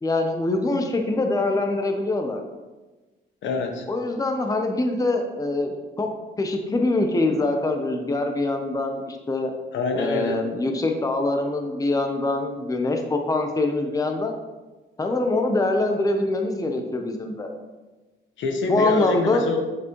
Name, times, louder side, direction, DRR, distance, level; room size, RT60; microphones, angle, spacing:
voice 1, 0.0-2.4 3.9-6.1 6.4-9.5 9.9-14.3 15.0-17.5 18.7-19.5, left 2 dB, 15° left, 4 dB, 0.8 m, -24 dB
voice 2, 3.4-3.9 9.7-10.4 18.4-19.6, left 4 dB, 70° left, 4 dB, 1.1 m, -25 dB
7.7 x 6.0 x 3.1 m, 1.2 s
cardioid pair, 90°, 20 cm